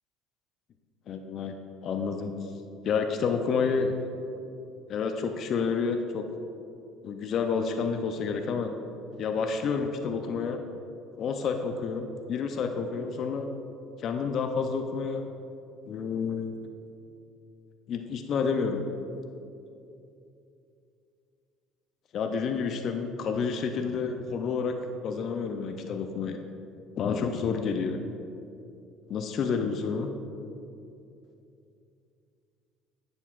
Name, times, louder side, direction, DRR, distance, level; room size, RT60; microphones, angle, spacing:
voice 1, 1.1-1.5 1.8-2.3 2.8-3.9 4.9-6.2 7.0-8.7 9.2-10.6 11.2-13.5 14.0-15.3 15.9-16.7 17.9-18.8 22.1-24.7 25.0-26.4 27.0-28.0 29.1-30.1, left 5 dB, 55° left, 5 dB, 0.5 m, -29 dB
9.9 x 7.0 x 2.4 m, 2.7 s
hypercardioid pair, 70°, 0 cm